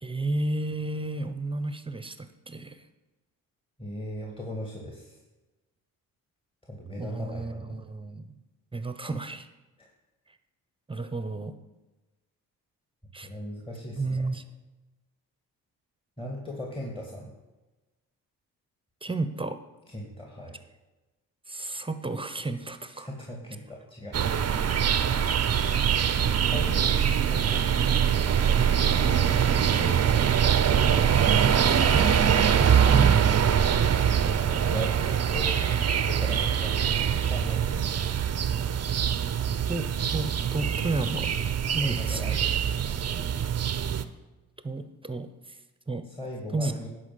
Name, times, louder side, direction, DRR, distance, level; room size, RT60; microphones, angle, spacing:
voice 1, 0.0-2.8 6.9-8.3 8.7-9.5 10.9-11.6 13.1-13.3 14.0-14.4 19.0-19.6 21.5-23.1 25.2-25.7 31.9-32.1 32.6-33.3 39.7-41.3 41.7-42.2 43.7-44.0 44.6-45.6 45.9-46.1 46.5-46.9, right 2 dB, 15° right, 10 dB, 1.0 m, -32 dB
voice 2, 3.8-5.2 6.6-7.8 9.8-9.9 13.2-14.3 16.2-17.3 19.9-20.6 23.0-24.2 24.9-25.4 26.2-27.0 27.3-31.5 34.3-35.0 35.3-35.5 36.0-36.9 37.2-37.8 41.8-42.4 46.0-46.9, left 1 dB, 15° left, 0 dB, 2.1 m, -39 dB
sound 1, 24.1-44.0, right 8 dB, 40° right, 0.8 m, -23 dB
11.0 x 4.6 x 7.7 m, 1.1 s
hypercardioid pair, 50°, 40 cm